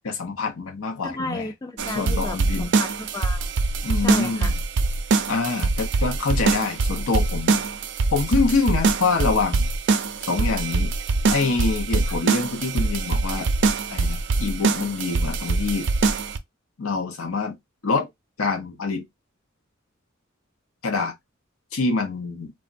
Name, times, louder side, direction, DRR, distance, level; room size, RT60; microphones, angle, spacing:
voice 1, 0.0-1.5 1.9-2.7 3.8-4.6 5.3-7.6 8.1-9.7 10.2-10.9 11.3-13.5 13.9-15.9 16.8-17.6 17.8-18.1 18.4-19.1 20.8-21.1 21.7-22.5, left 4 dB, 80° left, 0.7 m, -25 dB
voice 2, 1.0-3.5 3.9-4.5, left 2 dB, 15° left, 0.3 m, -33 dB
sound 1, 1.8-16.4, right 3 dB, 60° right, 0.4 m, -23 dB
3.4 x 2.0 x 2.5 m
head